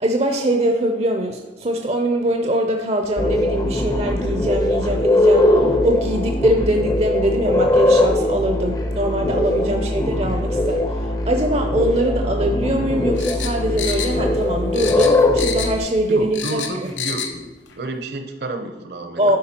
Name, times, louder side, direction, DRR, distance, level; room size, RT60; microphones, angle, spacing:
voice 1, 0.0-16.9 19.2-19.4, right 1 dB, 35° right, 4 dB, 0.5 m, -22 dB
sound 1, 3.2-15.8, left 1 dB, 20° left, 0.6 m, -20 dB
sound 2, 13.2-14.5 14.7-15.9 16.1-17.3 17.7-17.8, left 7 dB, 90° left, 0.8 m, -28 dB
voice 2, 16.1-17.5 17.7-19.4, right 2 dB, 60° right, 7 dB, 0.8 m, -30 dB
11.0 x 4.8 x 4.4 m, 1.2 s
head